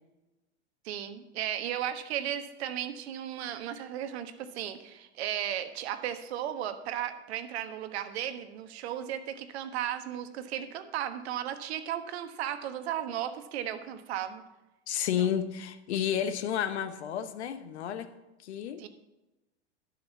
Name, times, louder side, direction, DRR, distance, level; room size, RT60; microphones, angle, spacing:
voice 1, 0.8-14.4 15.2-15.3 18.8-18.9, right 10 dB, 65° right, 9 dB, 1.3 m, -35 dB
voice 2, 14.9-18.1 18.4-18.8, left 9 dB, 70° left, 11 dB, 1.1 m, -31 dB
11.0 x 6.5 x 7.2 m, 1.0 s
hypercardioid pair, 90°, 34 cm